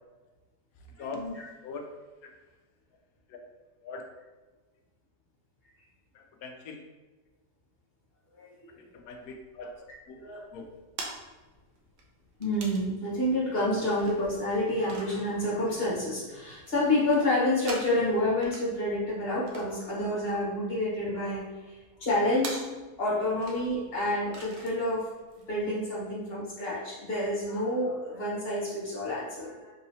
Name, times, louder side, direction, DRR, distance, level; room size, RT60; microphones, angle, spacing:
voice 1, 0.8-1.8 2.2-2.3 3.3-3.4 3.8-4.0 6.1-6.8 8.7-9.8 10.1-10.2 10.5-10.6, left 3 dB, 70° left, 2 dB, 0.9 m, -42 dB
sound 1, 9.0-25.7, right 3 dB, 85° right, 1.3 m, -48 dB
voice 2, 12.4-22.6 23.0-25.1 25.5-29.7, left 1 dB, 40° left, -6 dB, 1.3 m, -29 dB
3.8 x 2.9 x 2.7 m, 1.2 s
omnidirectional pair, 1.8 m